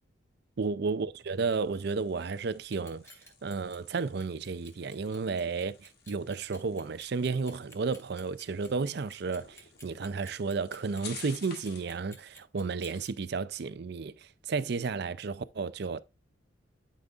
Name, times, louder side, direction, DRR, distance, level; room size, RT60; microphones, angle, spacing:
voice 1, 0.6-3.1 3.4-16.0, right 4 dB, 60° right, 0.5 m, -33 dB
sound 1, 1.3-12.0, left 5 dB, 55° left, 1.6 m, -53 dB
Clock, 2.6-13.1, left 1 dB, 15° left, 2.4 m, -53 dB
12.0 x 5.1 x 2.5 m
head